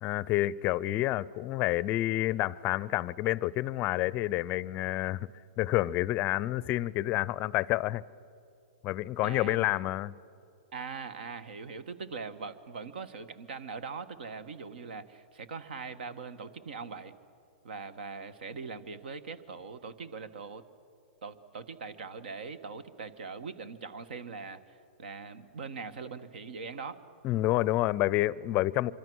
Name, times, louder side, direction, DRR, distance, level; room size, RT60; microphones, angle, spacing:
voice 1, 0.0-5.3 5.6-8.0 8.8-10.2 27.2-28.9, left 16 dB, 35° left, 0.5 m, -29 dB
voice 2, 9.2-9.8 10.7-17.1 17.6-20.6 21.2-27.1, right 5 dB, 70° right, 1.4 m, -41 dB
25.0 x 25.0 x 6.3 m
hypercardioid pair, 125°, 5 cm